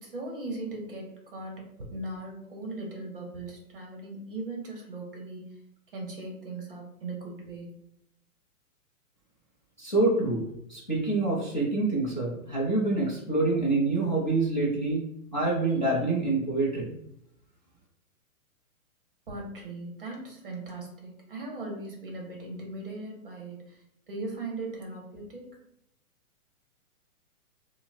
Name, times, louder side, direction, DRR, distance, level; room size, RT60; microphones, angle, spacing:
voice 1, 0.0-5.4 5.9-7.7 19.3-23.8 24.1-25.5, right 2 dB, 35° right, -1 dB, 0.8 m, -38 dB
voice 2, 9.8-10.4 10.7-15.0 15.3-16.9, right 2 dB, 35° left, -6 dB, 0.5 m, -26 dB
4.8 x 2.0 x 2.5 m, 0.76 s
hypercardioid pair, 175°, 44 cm